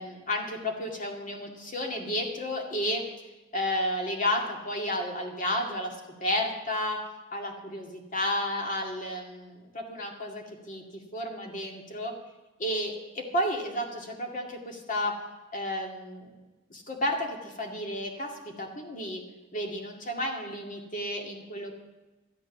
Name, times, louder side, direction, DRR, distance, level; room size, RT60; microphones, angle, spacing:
voice 1, 0.0-3.0 3.5-7.0 7.3-10.8 11.1-12.1 12.6-15.2 15.5-16.3 16.7-19.2 19.5-21.7, left 1 dB, 40° left, 1 dB, 2.2 m, -32 dB
13.5 x 8.3 x 7.0 m, 1.1 s
head